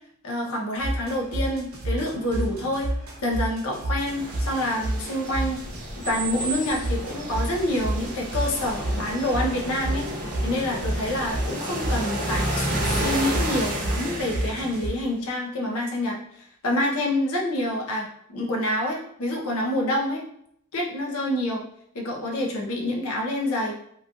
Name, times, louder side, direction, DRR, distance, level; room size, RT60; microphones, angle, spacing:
voice 1, 0.2-2.9 3.2-5.6 6.0-20.2 20.7-21.6 21.9-23.7, left 1 dB, 90° left, 0 dB, 0.7 m, -27 dB
sound 1, 0.8-6.1 6.8-14.9, right 1 dB, 90° right, 0.7 m, -30 dB
sound 2, 4.1-14.9, right 1 dB, 40° right, 0.8 m, -31 dB
3.0 x 2.4 x 2.5 m, 0.69 s
head